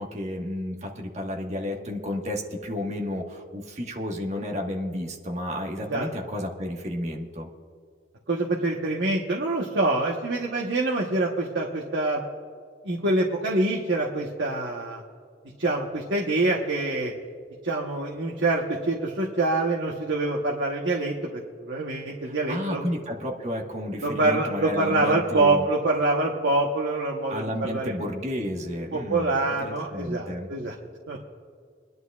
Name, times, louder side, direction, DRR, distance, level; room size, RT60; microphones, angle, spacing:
voice 1, 0.0-7.5 22.2-25.7 27.3-30.5, left 1 dB, 40° right, 0 dB, 1.4 m, -32 dB
voice 2, 8.3-12.2 12.8-15.0 15.6-17.1 17.6-22.8 24.0-27.9 28.9-30.7 31.1-31.3, right 2 dB, 80° right, -2 dB, 1.1 m, -25 dB
24.0 x 11.0 x 2.4 m, 2.1 s
head